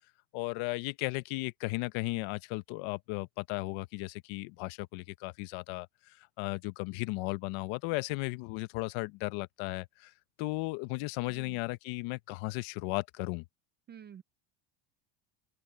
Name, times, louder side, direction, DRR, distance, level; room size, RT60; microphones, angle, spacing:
voice 1, 0.3-10.1 10.4-13.4, left 23 dB, 80° left, 0.9 m, -35 dB
voice 2, 11.2-11.6 13.9-14.2, right 8 dB, 25° right, 0.3 m, -50 dB
open air
cardioid pair, 155°, 48 cm